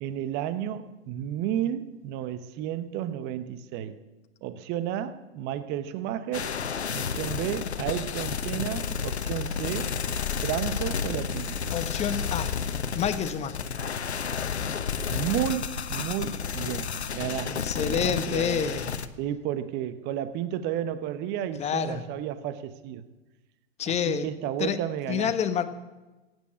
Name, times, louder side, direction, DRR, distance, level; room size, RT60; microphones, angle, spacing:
voice 1, 0.0-4.0 4.4-6.5 6.9-9.9 10.4-11.7 15.1-18.6 19.2-23.0 24.1-25.3, right 11 dB, 35° right, 13 dB, 0.9 m, -32 dB
sound 1, 6.3-19.1, left 6 dB, 90° left, 1.0 m, -31 dB
voice 2, 11.7-12.5 12.9-13.7 17.5-18.9 21.6-22.0 23.8-24.3 24.6-24.8 25.1-25.6, left 8 dB, 20° left, 10 dB, 1.1 m, -28 dB
15.5 x 9.1 x 8.5 m, 1.1 s
hypercardioid pair, 115°, 32 cm